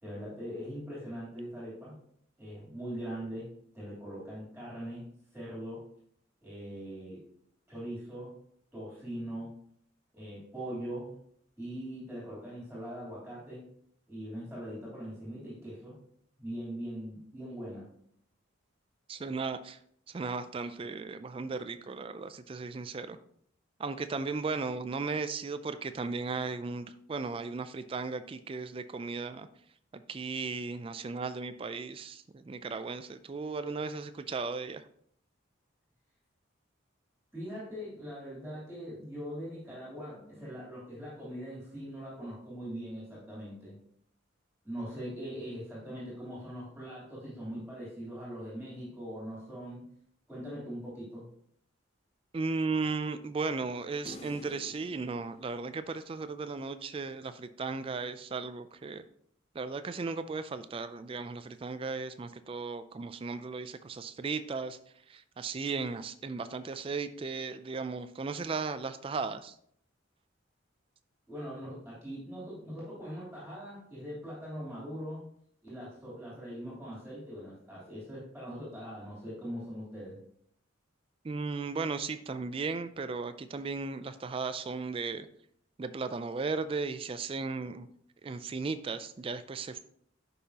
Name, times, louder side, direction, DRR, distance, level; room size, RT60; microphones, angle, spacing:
voice 1, 0.0-1.9 2.4-5.8 6.4-7.2 7.7-8.3 8.7-9.6 10.1-11.1 11.6-13.7 14.1-16.0 16.4-17.9 37.3-43.8 44.6-49.8 50.3-51.3 71.3-75.2 75.6-80.2, equal, ahead, -8 dB, 3.2 m, -41 dB
voice 2, 19.1-19.8 20.1-23.2 23.8-29.5 29.9-34.8 52.3-59.0 59.5-64.8 65.1-69.6 81.2-85.3 85.8-87.9 88.2-89.8, right 4 dB, 30° right, 11 dB, 0.3 m, -36 dB
sound 1, 54.1-56.5, left 2 dB, 30° left, 0.6 m, -50 dB
10.0 x 5.5 x 2.9 m, 0.66 s
head